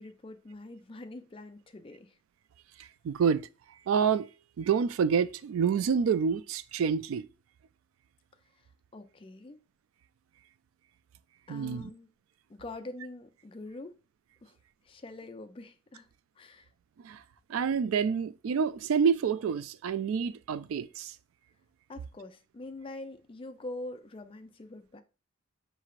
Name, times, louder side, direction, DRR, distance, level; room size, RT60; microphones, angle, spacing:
voice 1, 0.0-2.2 8.9-9.6 11.5-12.1 12.5-14.0 14.4-14.6 14.8-16.1 16.4-16.7 21.9-25.0, left 2 dB, 25° left, 0.4 m, -44 dB
voice 2, 2.8-3.5 3.9-4.3 4.6-7.3 11.5-11.9 17.0-17.2 17.5-21.1, right 6 dB, 85° right, 0.3 m, -28 dB
5.5 x 3.1 x 2.5 m
head